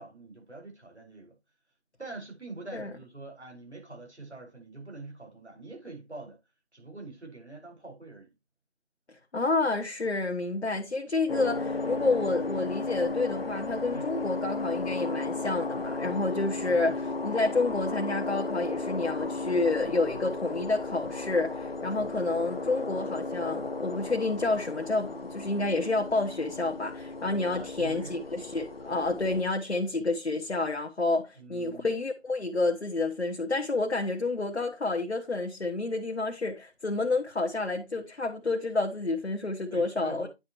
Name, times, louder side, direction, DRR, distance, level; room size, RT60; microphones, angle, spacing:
voice 1, 0.0-1.4 2.0-6.4 6.7-8.3 10.7-10.8 13.9-14.1 16.7-17.0 22.0-22.1 27.5-28.2 31.4-32.0 39.7-40.3, right 2 dB, 85° right, 5.7 m, -45 dB
voice 2, 9.3-40.3, left 3 dB, 85° left, 1.4 m, -29 dB
sound 1, 11.3-29.4, left 3 dB, 60° left, 1.0 m, -34 dB
9.8 x 6.7 x 3.1 m
figure-of-eight pair, 170°, 33 cm